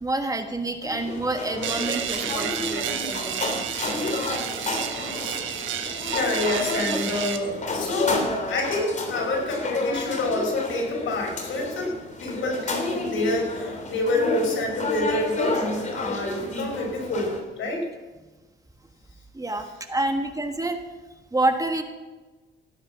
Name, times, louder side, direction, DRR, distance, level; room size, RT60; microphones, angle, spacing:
voice 1, 0.0-3.6 19.3-20.8 21.3-21.8, right 2 dB, 15° right, 6 dB, 1.5 m, -28 dB
sound 1, 0.8-17.4, left 2 dB, 40° left, 3.3 m, -31 dB
sound 2, 1.6-7.4, right 8 dB, 75° right, 1.4 m, -31 dB
voice 2, 6.0-8.2 8.5-17.9, left 2 dB, 75° left, -1 dB, 6.1 m, -27 dB
16.0 x 10.0 x 6.0 m, 1.2 s
cardioid pair, 90°, 20 cm